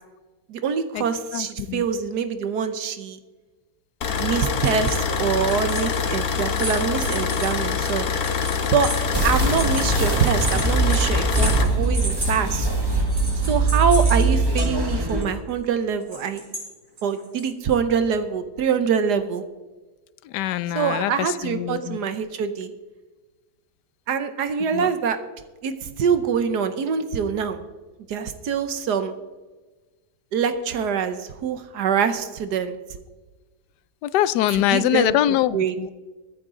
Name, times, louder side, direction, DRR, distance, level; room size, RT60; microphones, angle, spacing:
voice 1, 0.5-3.2 4.2-8.1 8.7-8.9 9.2-12.7 13.5-16.4 17.0-19.4 20.7-22.7 24.1-25.2 25.6-27.6 28.1-29.2 30.3-32.8 34.5-35.2 35.5-35.7, right 6 dB, 70° right, 10 dB, 1.4 m, -24 dB
voice 2, 1.3-1.8 20.2-22.0 24.7-24.9 34.0-35.9, left 13 dB, 75° left, 17 dB, 1.1 m, -23 dB
sound 1, 4.0-11.6, left 6 dB, 60° left, 1.5 m, -25 dB
sound 2, 4.6-5.1 5.4-14.6 15.1-15.2 16.0-16.6 17.0-17.5, right 1 dB, 45° right, 5.0 m, -34 dB
sound 3, 9.1-15.2, right 3 dB, 15° right, 1.5 m, -22 dB
22.5 x 9.0 x 3.8 m, 1.2 s
omnidirectional pair, 1.9 m